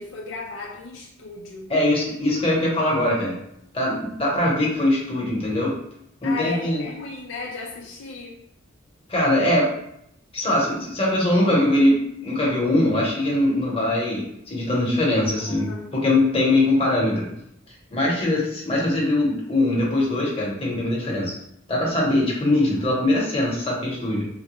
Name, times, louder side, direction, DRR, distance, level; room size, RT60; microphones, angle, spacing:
voice 1, 0.0-1.7 6.2-8.3 15.5-15.9, left 4 dB, 65° left, -1 dB, 0.4 m, -35 dB
voice 2, 1.7-3.3 3.7-5.8 6.2-6.8 9.1-9.7 10.3-17.3 17.9-21.3 21.7-24.3, left 1 dB, 30° left, -4 dB, 1.0 m, -22 dB
3.6 x 2.2 x 3.0 m, 0.75 s
head